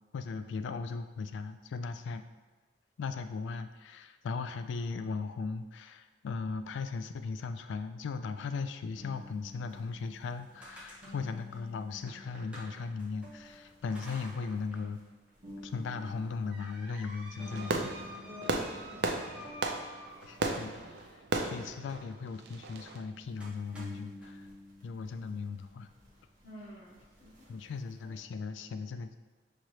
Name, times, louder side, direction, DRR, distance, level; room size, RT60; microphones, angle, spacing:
voice 1, 0.1-2.2 3.0-15.0 15.6-17.9 20.2-24.5 24.8-25.9 27.5-29.2, left 4 dB, 75° left, 9 dB, 0.3 m, -38 dB
sound 1, 8.9-21.8 22.2-22.9 23.2-28.3, left 1 dB, 40° right, 1.0 m, -53 dB
sound 2, 10.2-13.3 13.9-14.9 15.3-15.4 16.0-20.7 22.8-23.0 23.4-24.3, right 1 dB, 5° right, 0.7 m, -51 dB
Fireworks, 17.4-23.0, right 3 dB, 60° right, 0.4 m, -35 dB
voice 2, 18.2-19.3 26.4-27.5, left 1 dB, 50° left, -10 dB, 1.2 m, -49 dB
6.1 x 2.8 x 3.1 m, 1.3 s
head